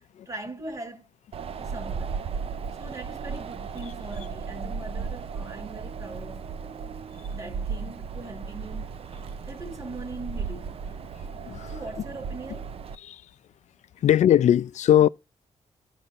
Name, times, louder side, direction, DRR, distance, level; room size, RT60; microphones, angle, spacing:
voice 1, 0.2-1.1 1.6-2.2 2.8-7.0 7.3-8.9 9.4-10.8 11.7-12.7, right 2 dB, 25° right, 1.5 m, -40 dB
Wind, 1.3-13.0, right 5 dB, 50° right, 0.4 m, -35 dB
voice 2, 11.4-11.7 13.0-13.2 14.0-15.1, left 11 dB, 70° left, 0.4 m, -19 dB
15.5 x 5.4 x 2.4 m
wide cardioid pair, 120°, 12 cm